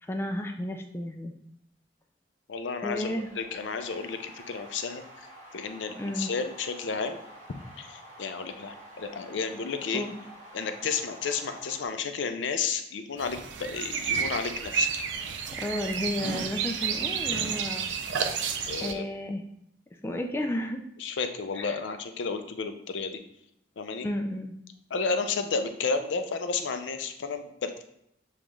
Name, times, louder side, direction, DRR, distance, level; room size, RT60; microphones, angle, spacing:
voice 1, 0.0-1.3 2.8-3.3 5.9-6.3 9.9-10.1 15.6-17.9 18.8-19.4 20.0-20.8 21.6-21.8 24.0-24.5, left 1 dB, 15° left, 4 dB, 0.3 m, -32 dB
voice 2, 2.5-5.3 5.5-7.2 7.8-10.0 10.5-14.9 18.7-19.0 21.0-23.2 23.8-24.1 24.9-27.8, left 5 dB, 90° left, 8 dB, 0.5 m, -32 dB
sound 1, 2.9-11.9, right 1 dB, 40° right, 1.7 m, -49 dB
sound 2, 13.2-18.9, right 6 dB, 80° right, 0.5 m, -31 dB
7.0 x 2.4 x 3.1 m, 0.76 s
head